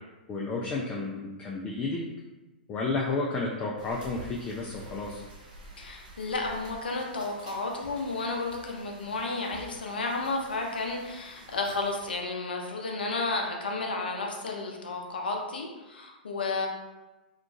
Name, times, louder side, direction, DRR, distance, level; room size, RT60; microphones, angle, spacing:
voice 1, 0.3-2.0 2.7-5.2, left 3 dB, 20° left, -3 dB, 0.3 m, -31 dB
sound 1, 3.8-12.2, right 1 dB, 60° right, 0.7 m, -49 dB
voice 2, 5.8-16.7, left 3 dB, 75° left, 1 dB, 0.5 m, -32 dB
2.8 x 2.4 x 2.4 m, 1.1 s
hypercardioid pair, 110°, 5 cm